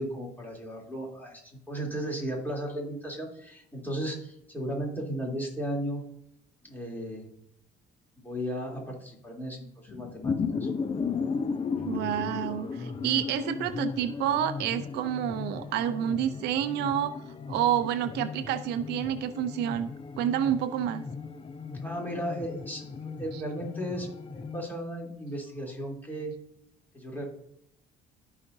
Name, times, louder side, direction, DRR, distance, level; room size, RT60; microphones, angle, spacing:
voice 1, 0.0-6.0 6.6-7.3 8.2-10.7 21.8-26.3 26.9-27.2, equal, 10° left, -2 dB, 3.3 m, -35 dB
sound 1, 9.9-24.6, left 5 dB, 30° left, 0.7 m, -35 dB
voice 2, 11.9-17.2 17.5-21.0, right 10 dB, 85° right, 11 dB, 0.6 m, -29 dB
14.0 x 5.0 x 2.7 m, 0.76 s
cardioid pair, 110°, 17 cm